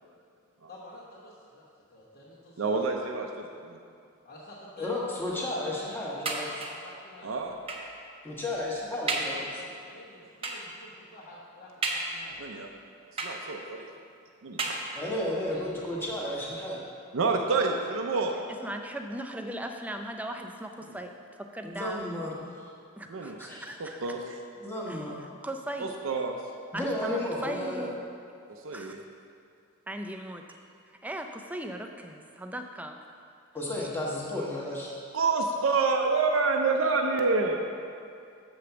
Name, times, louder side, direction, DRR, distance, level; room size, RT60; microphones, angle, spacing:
voice 1, 0.7-2.9 4.2-7.4 9.3-12.5 14.6-16.0 16.3-16.6, left 1 dB, 45° left, -9 dB, 1.1 m, -50 dB
voice 2, 2.6-3.8 7.2-7.5 12.4-12.7 13.2-13.9 14.4-14.6 17.1-18.4 23.1-23.4 24.0-24.4 25.8-26.4 28.6-29.0 35.1-37.6, right 4 dB, 65° right, 2 dB, 0.5 m, -27 dB
voice 3, 4.8-6.5 8.2-9.4 14.9-16.8 21.6-22.7 23.2-23.6 24.6-25.1 26.7-27.9 33.5-35.0, left 1 dB, 10° left, -5 dB, 1.2 m, -33 dB
sound 1, 6.2-6.9 7.7-8.0 8.5-8.6 9.1-9.4 10.4-10.8 11.8-12.4 13.2-13.8 14.6-15.3 16.1-16.2 16.5-16.6, right 2 dB, 25° right, 0.7 m, -33 dB
voice 4, 18.6-22.1 23.0-24.1 24.9-25.9 26.7-27.9 28.7-29.0 29.9-30.4 31.0-33.0 33.8-33.9, right 1 dB, 5° right, 4 dB, 0.4 m, -38 dB
7.0 x 5.1 x 6.9 m, 2.4 s
head